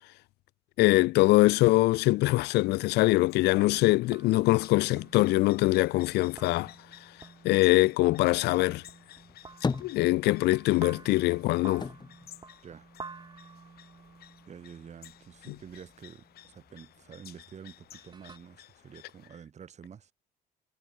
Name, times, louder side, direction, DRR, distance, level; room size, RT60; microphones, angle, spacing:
voice 1, 0.8-6.7 7.4-8.8 9.8-11.9 15.5-15.6, left 19 dB, 85° left, 0.7 m, -23 dB
sound 1, 2.4-19.3, left 13 dB, 65° left, 4.7 m, -55 dB
sound 2, 3.5-18.4, right 4 dB, 25° right, 4.3 m, -51 dB
sound 3, 9.2-10.7 11.0-13.4 13.7-14.6, left 5 dB, 25° left, 2.2 m, -37 dB
voice 2, 14.5-20.1, right 7 dB, 40° right, 7.6 m, -48 dB
cardioid pair, 110°, 17 cm